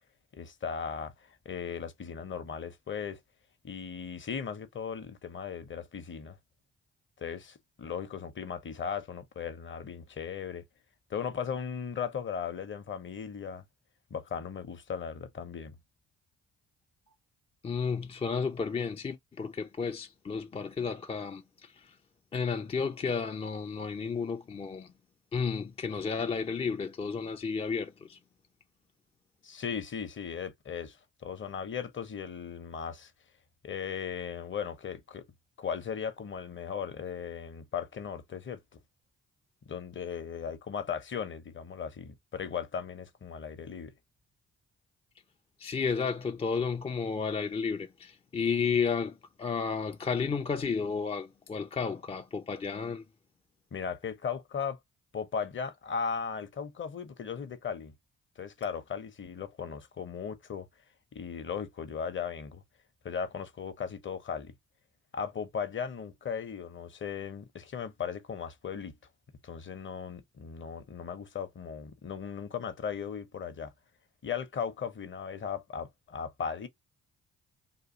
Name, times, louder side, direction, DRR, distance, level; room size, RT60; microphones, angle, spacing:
voice 1, 0.3-3.2 3.6-6.4 7.2-10.6 11.1-13.6 14.1-15.7 29.4-31.0 31.2-33.1 33.6-35.2 35.6-38.6 39.7-43.9 53.7-54.8 55.1-57.9 58.4-60.7 61.1-62.6 63.0-64.5 65.1-68.9 69.4-73.7 74.2-76.7, left 7 dB, 35° left, 0.7 m, -37 dB
voice 2, 17.6-21.4 22.3-24.9 25.3-28.2 45.6-49.1 49.4-53.0, left 5 dB, 20° left, 0.3 m, -32 dB
2.9 x 2.3 x 2.7 m
hypercardioid pair, 45°, 33 cm